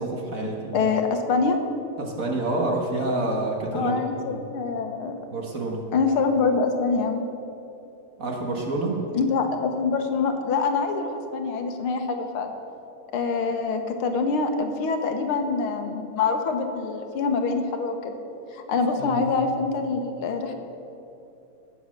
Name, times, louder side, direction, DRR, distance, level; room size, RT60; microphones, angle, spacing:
voice 1, 0.0-0.8 2.0-4.0 4.3-4.4 5.3-5.9 8.2-9.1 19.0-19.4, right 2 dB, 45° right, 0 dB, 1.8 m, -28 dB
voice 2, 0.7-1.6 3.7-5.2 5.9-7.2 9.1-12.5 13.1-18.2 18.5-20.5, left 4 dB, 85° left, 5 dB, 1.9 m, -25 dB
18.0 x 7.2 x 6.6 m, 2.8 s
omnidirectional pair, 2.3 m